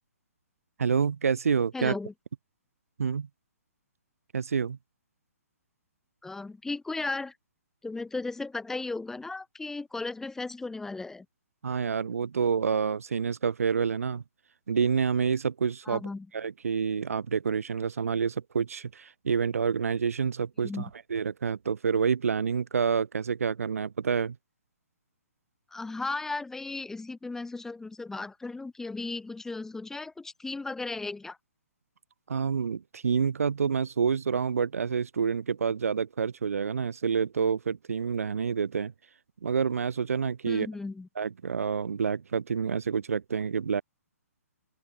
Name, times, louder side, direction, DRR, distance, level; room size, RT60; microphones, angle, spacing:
voice 1, 0.8-1.9 3.0-3.3 4.3-4.8 11.6-14.2 14.7-16.0 16.3-24.4 32.3-38.9 39.4-40.7 41.2-43.8, right 6 dB, 65° right, 1.1 m, -28 dB
voice 2, 1.7-2.1 6.2-7.3 7.8-11.3 15.9-16.3 20.6-20.9 25.7-31.4 40.4-41.1, left 3 dB, 5° left, 1.4 m, -35 dB
open air
figure-of-eight pair, 130°, 8 cm